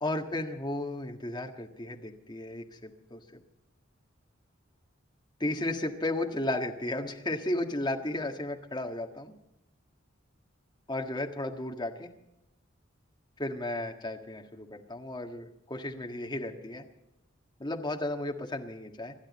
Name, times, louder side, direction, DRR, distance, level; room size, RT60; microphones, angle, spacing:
voice 1, 0.0-3.4 5.4-9.3 10.9-12.1 13.4-16.8 17.6-19.1, left 1 dB, 20° left, 3 dB, 1.6 m, -34 dB
26.5 x 11.5 x 4.2 m, 0.86 s
head